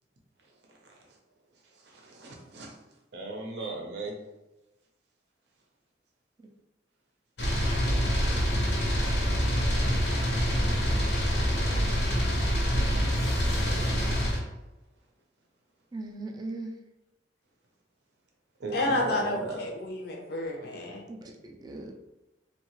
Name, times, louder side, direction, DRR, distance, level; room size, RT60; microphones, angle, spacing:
voice 1, 0.7-1.1 1.6-2.8 3.1-4.2 11.0-11.9 13.6-14.4 18.6-19.6, right 2 dB, 70° right, 0 dB, 0.6 m, -39 dB
sound 1, 7.4-14.4, equal, 90° left, 0.8 m, -26 dB
voice 2, 15.9-16.8 21.1-21.9, right 2 dB, 20° right, 2 dB, 0.3 m, -39 dB
voice 3, 18.7-21.0, left 1 dB, 60° left, 0 dB, 0.5 m, -30 dB
2.7 x 2.3 x 2.9 m, 1.0 s
head